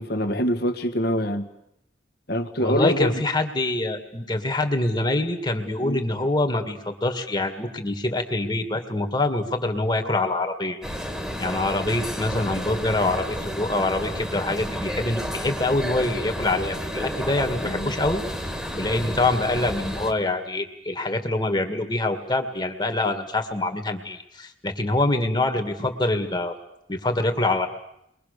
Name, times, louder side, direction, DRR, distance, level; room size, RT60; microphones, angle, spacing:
voice 1, 0.0-1.5 2.3-3.2 5.8-6.0 17.6-17.9, equal, 55° left, 7 dB, 1.9 m, -25 dB
voice 2, 2.6-10.8 11.4-18.2 18.7-26.5 26.9-27.7, left 2 dB, 20° left, 6 dB, 2.1 m, -25 dB
sound 1, 10.8-20.1, equal, 5° right, 1.9 m, -31 dB
30.0 x 22.5 x 6.8 m, 0.80 s
head